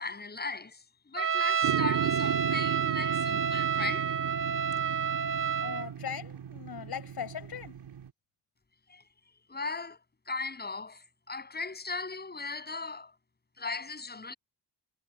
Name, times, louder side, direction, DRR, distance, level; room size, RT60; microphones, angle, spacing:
voice 1, 0.0-4.1 8.9-9.0 9.5-13.2 13.6-14.3, left 3 dB, 25° left, 7.9 m, -38 dB
Trumpet, 1.2-5.9, right 7 dB, 30° right, 0.8 m, -29 dB
sound 1, 1.6-8.1, right 9 dB, 85° right, 4.0 m, -35 dB
voice 2, 5.6-7.8, left 8 dB, 65° left, 5.7 m, -39 dB
wide cardioid pair, 160°, 40 cm